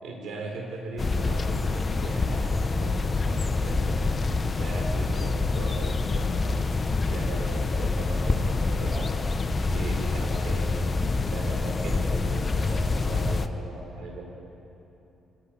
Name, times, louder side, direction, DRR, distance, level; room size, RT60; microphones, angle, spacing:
voice 1, 0.0-4.2 4.6-9.1 9.7-14.2, right 2 dB, 80° right, 0 dB, 4.9 m, -38 dB
sound 1, 1.0-13.5, left 3 dB, 30° left, 1.0 m, -26 dB
26.0 x 17.5 x 5.8 m, 3.0 s
cardioid pair, 90°, 0 cm